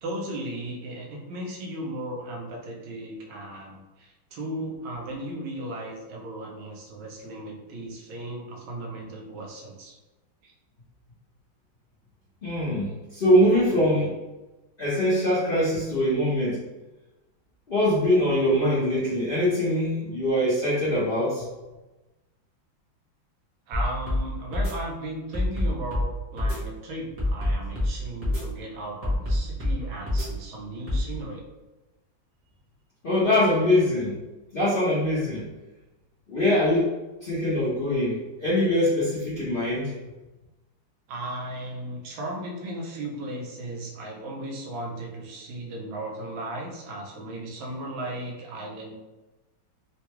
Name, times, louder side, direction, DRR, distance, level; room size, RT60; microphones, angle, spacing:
voice 1, 0.0-9.9 10.4-10.5 23.7-31.4 41.1-48.9, right 1 dB, 75° right, -1 dB, 1.5 m, -36 dB
voice 2, 12.4-14.1 14.8-16.6 17.7-21.5 33.0-34.2 34.5-35.5 36.3-36.9 37.2-39.9, left 1 dB, 75° left, -10 dB, 0.5 m, -23 dB
sound 1, 23.7-24.2 24.5-24.7 25.3-26.1 26.4-26.6 27.2-27.9 28.2-28.4 29.0-29.8 30.1-30.3 30.9-31.0, left 1 dB, 30° right, 0.6 m, -25 dB
3.7 x 2.2 x 2.9 m, 1.1 s
omnidirectional pair, 2.2 m